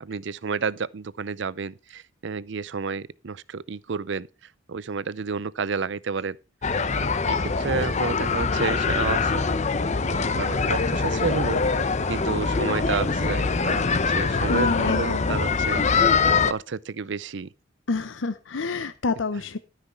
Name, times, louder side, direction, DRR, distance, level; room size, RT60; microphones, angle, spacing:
voice 1, 0.0-4.3 4.7-6.4 7.3-9.5 10.4-11.6 12.1-15.9 16.4-17.5, right 5 dB, 65° right, 0.5 m, -30 dB
sound 1, 6.6-16.5, left 4 dB, 35° left, 0.7 m, -23 dB
voice 2, 14.3-15.3 17.9-19.6, left 3 dB, 75° left, 0.7 m, -28 dB
13.0 x 5.9 x 5.7 m
head